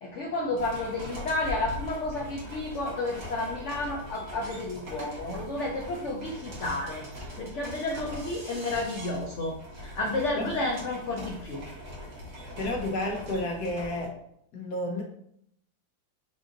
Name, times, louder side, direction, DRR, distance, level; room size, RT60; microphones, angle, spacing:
voice 1, 0.0-11.6, left 2 dB, 75° left, 0 dB, 0.6 m, -31 dB
sound 1, 0.5-14.0, equal, 65° right, 1.9 m, -41 dB
voice 2, 10.4-10.7 12.6-14.2 14.5-15.0, left 1 dB, 60° left, 1 dB, 1.3 m, -31 dB
5.0 x 2.5 x 3.8 m, 0.71 s
omnidirectional pair, 2.0 m